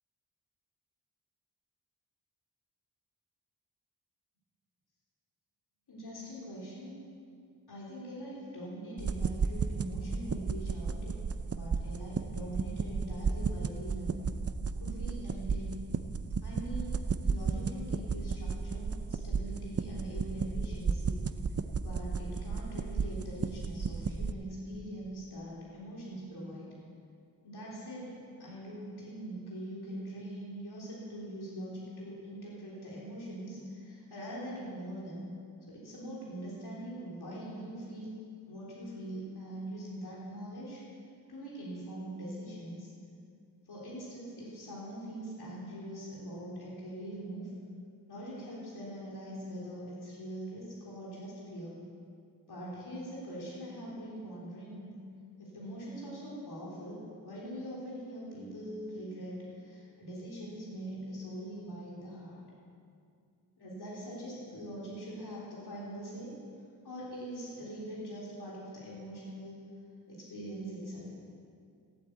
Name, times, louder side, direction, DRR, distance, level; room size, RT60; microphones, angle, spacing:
voice 1, 5.9-7.0 7.7-11.1 11.5-14.2 14.8-15.7 16.4-21.2 21.8-26.7 27.4-35.2 35.7-38.1 38.5-40.8 41.3-42.9 43.7-47.5 48.1-51.7 52.5-54.9 55.4-62.4 63.6-66.3 66.8-69.5 70.1-71.1, right 1 dB, 80° left, -6 dB, 3.7 m, -42 dB
sound 1, 9.0-24.3, right 5 dB, 40° right, 0.6 m, -34 dB
15.0 x 8.7 x 8.2 m, 2.3 s
wide cardioid pair, 85°, 38 cm